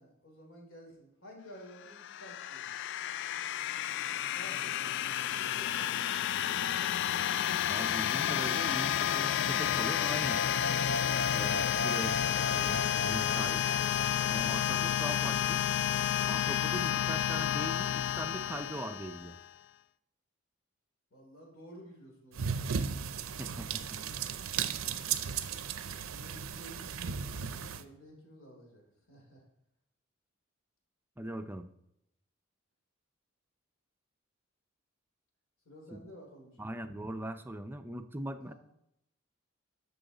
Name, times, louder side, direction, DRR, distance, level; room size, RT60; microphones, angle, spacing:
voice 1, 0.0-2.8 4.3-5.0 5.4-6.7 21.1-22.6 24.8-25.2 26.1-29.4 35.6-36.7 38.4-38.5, equal, 75° left, 0 dB, 3.1 m, -53 dB
sound 1, 1.9-19.5, left 10 dB, 60° left, 0.3 m, -31 dB
voice 2, 7.7-10.4 11.3-13.7 14.3-15.6 16.3-19.4 23.4-24.0 31.2-31.7 35.9-36.0 36.6-38.5, right 1 dB, 10° right, 8 dB, 0.5 m, -40 dB
sound 2, 10.3-15.5, equal, 90° left, 1.2 m, -40 dB
sound 3, 22.3-27.8, right 7 dB, 90° right, 0.6 m, -35 dB
10.0 x 6.9 x 4.0 m, 0.81 s
head